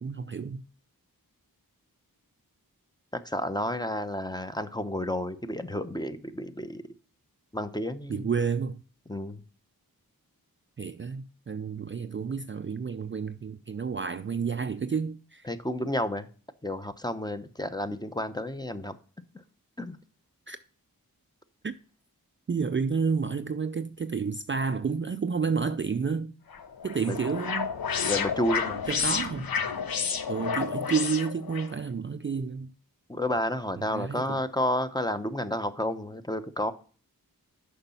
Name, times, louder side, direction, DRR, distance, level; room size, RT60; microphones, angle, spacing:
voice 1, 0.0-0.6 8.1-8.8 10.8-15.5 20.5-20.6 21.6-21.7 22.5-26.3 26.8-27.7 28.9-29.5 30.3-32.7 33.9-34.4, right 5 dB, 35° right, 0.4 m, -30 dB
voice 2, 3.2-6.8 7.5-8.3 9.1-9.4 15.5-16.3 16.6-18.9 19.8-20.0 27.0-27.1 28.0-28.9 33.1-36.7, left 1 dB, 10° left, 0.8 m, -31 dB
sound 1, 26.5-31.7, left 6 dB, 70° left, 0.8 m, -30 dB
6.6 x 5.5 x 5.6 m
cardioid pair, 40°, 37 cm